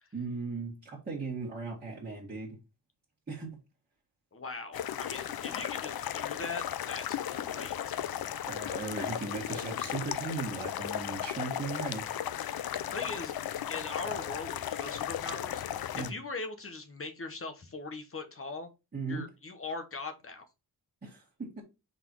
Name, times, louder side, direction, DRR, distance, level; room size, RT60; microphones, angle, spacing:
voice 1, 0.1-2.6 3.3-3.5 8.5-12.0 15.9-16.1 18.9-19.2 21.0-21.6, right 4 dB, 25° right, 2.0 m, -37 dB
voice 2, 4.3-8.1 12.6-13.3 13.7-18.7 19.1-20.5, left 3 dB, 35° left, 1.0 m, -41 dB
sound 1, 4.7-16.1, left 10 dB, 80° left, 0.5 m, -36 dB
5.8 x 4.1 x 4.6 m
wide cardioid pair, 170°, 37 cm